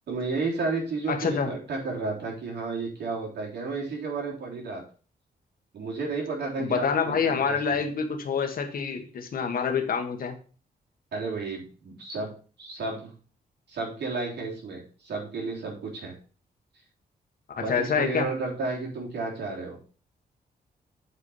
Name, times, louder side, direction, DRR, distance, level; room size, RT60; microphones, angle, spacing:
voice 1, 0.1-4.8 5.7-7.8 11.1-12.3 12.6-13.1 13.7-16.1 17.6-19.9, right 3 dB, 85° right, -2 dB, 3.5 m, -32 dB
voice 2, 1.1-1.5 6.6-10.3 17.7-18.3, left 6 dB, 60° left, 4 dB, 1.5 m, -27 dB
8.2 x 4.8 x 5.6 m, 0.38 s
cardioid pair, 120°, 17 cm